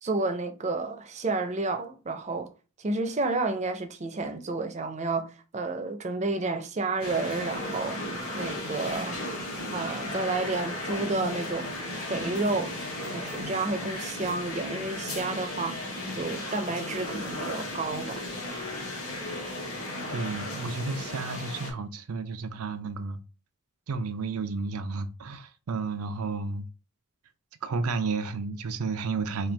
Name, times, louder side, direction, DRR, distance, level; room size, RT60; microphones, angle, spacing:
voice 1, 0.0-2.5 2.8-8.1 8.3-9.2 9.7-12.8 13.1-18.3, right 3 dB, 30° right, 0.5 m, -31 dB
sound 1, 7.0-21.7, left 1 dB, 80° left, 1.6 m, -35 dB
voice 2, 20.1-23.2 23.9-26.7 27.6-29.5, right 4 dB, 90° right, 0.5 m, -32 dB
4.3 x 2.4 x 3.3 m
head